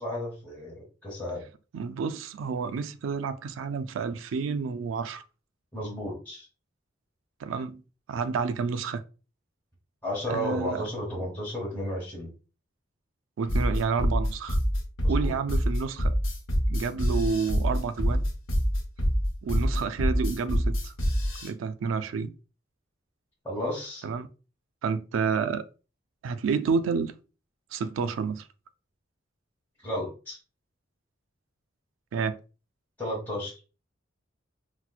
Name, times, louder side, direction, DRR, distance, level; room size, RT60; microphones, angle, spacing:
voice 1, 0.0-1.4 5.7-6.5 10.0-12.3 15.0-15.3 23.4-24.0 29.8-30.4 33.0-33.6, equal, 10° left, 1.0 m, -33 dB
voice 2, 1.7-5.2 7.4-7.8 8.1-9.0 10.3-10.8 13.4-14.6 15.1-16.2 16.7-18.3 19.4-20.9 21.4-22.3 24.0-24.3 24.8-25.6 26.2-27.1 27.7-28.5 32.1-32.4, right 5 dB, 80° right, 0.3 m, -29 dB
sound 1, 13.5-21.5, equal, 75° left, 0.9 m, -25 dB
4.3 x 2.1 x 2.3 m
head